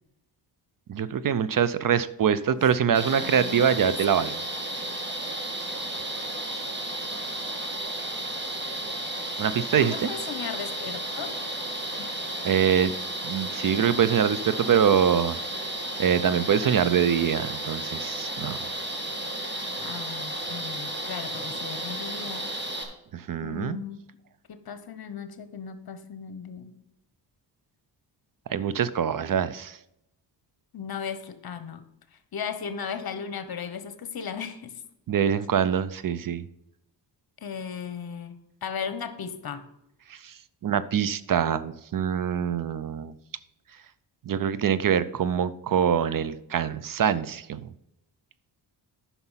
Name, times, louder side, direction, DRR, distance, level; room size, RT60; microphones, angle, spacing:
voice 1, 0.9-4.3 9.4-10.1 12.4-12.9 13.2-15.4 16.0-18.7 23.1-23.8 28.5-29.8 35.1-36.5 40.1-43.1 44.3-47.7, right 8 dB, 50° right, 16 dB, 0.6 m, -24 dB
sound 1, 2.9-22.8, right 1 dB, 25° right, 2.0 m, -33 dB
voice 2, 3.2-4.3 9.8-11.4 19.8-22.5 23.4-24.0 24.5-26.7 30.7-31.8 32.3-34.8 37.4-39.7, left 6 dB, 55° left, 12 dB, 1.1 m, -36 dB
9.7 x 5.8 x 5.7 m, 0.81 s
cardioid pair, 110°, 43 cm